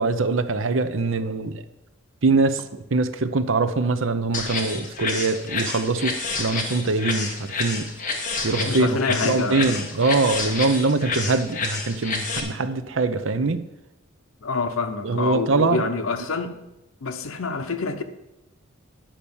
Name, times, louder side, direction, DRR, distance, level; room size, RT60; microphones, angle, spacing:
voice 1, 0.0-1.6 2.2-7.9 8.4-13.6 15.0-15.8, right 3 dB, 65° right, 0.7 m, -23 dB
sound 1, 4.3-12.4, left 4 dB, 40° left, 1.5 m, -29 dB
voice 2, 8.6-9.8 14.4-16.5 17.0-18.0, left 4 dB, 90° left, 0.9 m, -27 dB
10.0 x 5.8 x 7.1 m
head